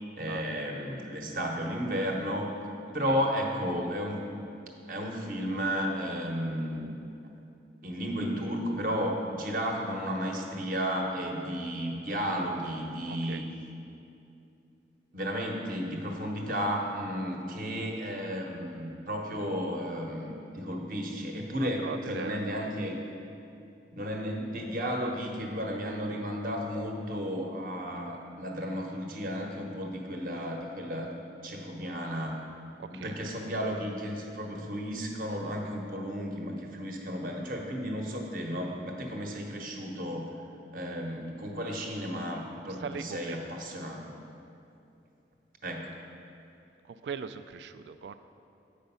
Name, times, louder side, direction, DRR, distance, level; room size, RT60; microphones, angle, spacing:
voice 1, 0.2-2.6 2.9-4.2 4.9-6.9 7.8-13.4 15.1-23.0 23.9-31.1 31.4-32.4 32.9-40.3 40.7-44.1 45.6-46.0, equal, 50° right, 1 dB, 0.9 m, -33 dB
voice 2, 13.1-13.4 21.6-22.4 32.8-33.2 42.6-43.4 46.8-48.2, right 6 dB, 80° right, 11 dB, 0.3 m, -40 dB
8.0 x 5.0 x 5.5 m, 2.6 s
head